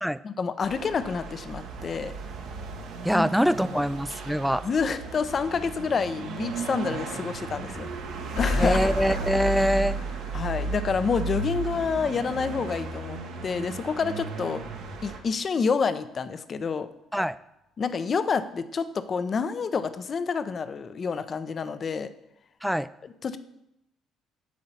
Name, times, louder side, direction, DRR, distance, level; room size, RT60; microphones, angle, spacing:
voice 1, 0.2-2.1 3.1-3.3 3.6-3.8 4.6-7.9 8.3-8.8 10.3-14.6 15.0-16.9 17.8-22.1 23.0-23.4, left 5 dB, 45° left, 12 dB, 0.6 m, -28 dB
sound 1, 0.6-15.2, right 4 dB, 70° right, 1.2 m, -35 dB
voice 2, 3.0-4.6 8.6-10.0 17.1-17.4 22.6-22.9, equal, ahead, 15 dB, 0.4 m, -24 dB
sound 2, 8.4-11.6 12.0-12.1 12.3-12.4, left 2 dB, 85° left, 1.8 m, -32 dB
9.3 x 3.9 x 7.0 m, 0.84 s
hypercardioid pair, 50°, 0 cm